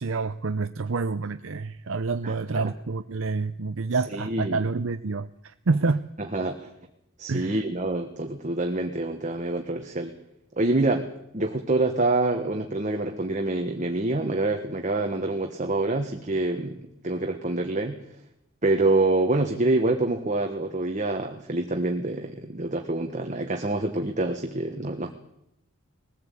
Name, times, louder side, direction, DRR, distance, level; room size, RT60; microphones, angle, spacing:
voice 1, 0.0-6.0 7.3-7.6, right 4 dB, 70° right, 10 dB, 0.6 m, -28 dB
voice 2, 2.2-2.7 4.1-4.6 6.3-6.7 7.2-10.1 10.6-11.1 11.3-18.0 18.6-25.1, right 2 dB, 35° right, 4 dB, 1.4 m, -26 dB
21.0 x 15.0 x 8.4 m, 0.84 s
head